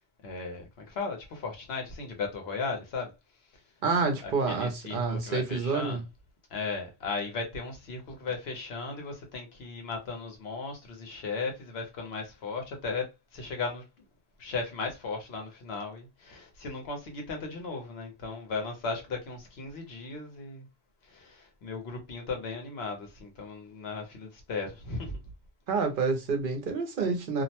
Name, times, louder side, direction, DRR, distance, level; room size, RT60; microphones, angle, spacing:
voice 1, 0.2-3.1 4.2-6.0 6.5-13.8 14.4-20.7 21.0-25.2, left 4 dB, 75° left, 1.1 m, -36 dB
voice 2, 3.8-6.0 25.7-27.4, right 4 dB, 60° right, 0.8 m, -28 dB
2.6 x 2.1 x 2.8 m
omnidirectional pair, 1.1 m